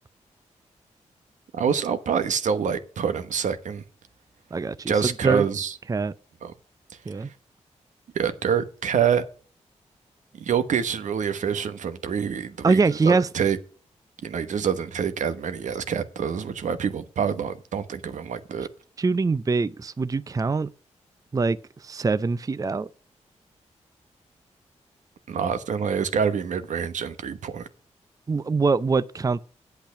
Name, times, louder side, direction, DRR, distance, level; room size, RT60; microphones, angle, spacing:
voice 1, 1.5-3.8 4.9-5.8 6.4-6.5 7.2-7.3 8.1-9.2 10.3-13.6 14.2-18.7 25.3-27.7, right 7 dB, 80° right, 1.1 m, -26 dB
voice 2, 4.5-4.9 5.2-5.4 5.9-6.1 7.1-7.3 12.6-13.3 19.0-20.7 21.3-22.9 28.3-29.4, right 4 dB, 30° right, 0.5 m, -23 dB
8.6 x 8.1 x 5.8 m
cardioid pair, 55°, 13 cm